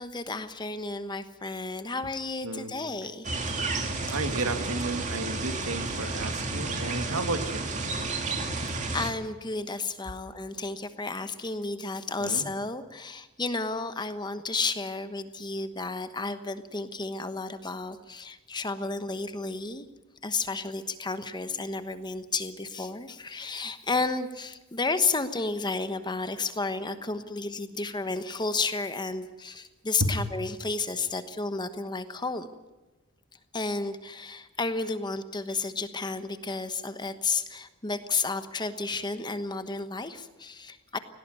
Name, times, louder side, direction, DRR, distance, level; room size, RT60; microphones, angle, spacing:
voice 1, 0.0-3.4 8.0-19.9 20.2-32.5 33.5-41.0, left 3 dB, 20° left, 10 dB, 1.1 m, -32 dB
sound 1, 3.2-9.1, right 3 dB, 35° right, 2.5 m, -31 dB
voice 2, 4.0-7.6 12.2-12.5 30.0-30.1, right 2 dB, 80° right, 7 dB, 2.1 m, -32 dB
18.0 x 18.0 x 9.3 m, 1.1 s
head